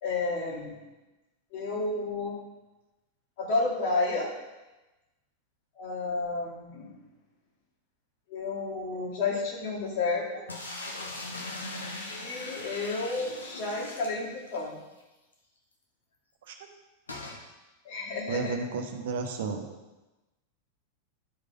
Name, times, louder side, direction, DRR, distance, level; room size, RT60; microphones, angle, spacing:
voice 1, 0.0-0.8 1.5-2.4 3.4-4.3 5.8-7.0 8.3-10.4 12.1-14.7 17.8-18.6, left 3 dB, 50° left, -3 dB, 2.4 m, -31 dB
sound 1, 10.5-14.7 15.0-15.1 15.3-15.4 17.1-17.4, left 2 dB, 75° left, 1.1 m, -40 dB
voice 2, 18.3-19.7, right 4 dB, 55° right, 4 dB, 1.0 m, -32 dB
11.0 x 4.9 x 3.8 m, 1.1 s
figure-of-eight pair, 90°, 0 cm